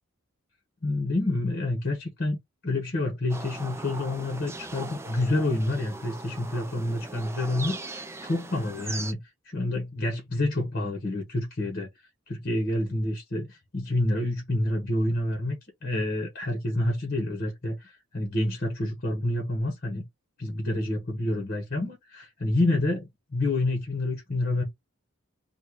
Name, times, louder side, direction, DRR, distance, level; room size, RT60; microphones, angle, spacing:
voice 1, 0.8-2.4 2.6-9.2 9.4-11.9 12.3-20.0 20.4-24.6, left 1 dB, 40° left, 1.2 m, -28 dB
sound 1, 3.3-9.1, right 2 dB, 10° right, 0.5 m, -39 dB
4.2 x 2.4 x 4.6 m
head